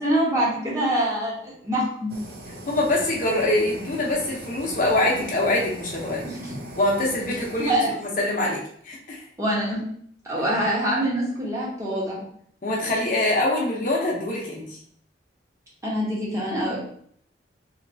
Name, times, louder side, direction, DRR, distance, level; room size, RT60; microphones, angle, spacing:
voice 1, 0.0-2.1 6.2-6.6 7.7-7.9 9.4-9.8 10.2-12.2 15.8-16.8, right 1 dB, 15° right, -6 dB, 0.9 m, -25 dB
Fire, 2.1-7.7, right 1 dB, 60° right, 0.5 m, -40 dB
voice 2, 2.7-6.2 6.8-7.8 8.2-9.3 12.6-14.8, left 1 dB, 45° left, -2 dB, 0.6 m, -24 dB
3.1 x 2.8 x 2.6 m, 0.62 s
head